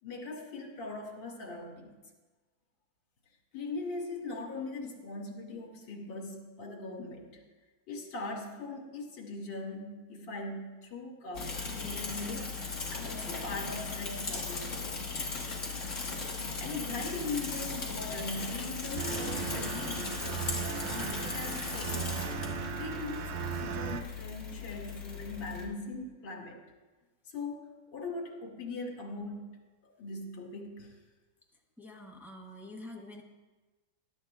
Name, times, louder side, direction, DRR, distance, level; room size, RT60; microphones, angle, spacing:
voice 1, 0.0-2.0 3.5-7.4 7.9-12.6 12.9-14.8 16.4-22.3 22.8-26.6 27.3-29.6 29.8-30.9, left 2 dB, 65° left, 0 dB, 2.7 m, -40 dB
Bicycle / Mechanisms, 11.3-25.6, left 4 dB, 40° left, 1.9 m, -37 dB
sound 1, 18.9-24.0, right 8 dB, 90° right, 1.5 m, -37 dB
voice 2, 31.8-33.2, left 1 dB, ahead, -1 dB, 0.9 m, -46 dB
20.5 x 11.5 x 2.4 m, 1.2 s
omnidirectional pair, 2.2 m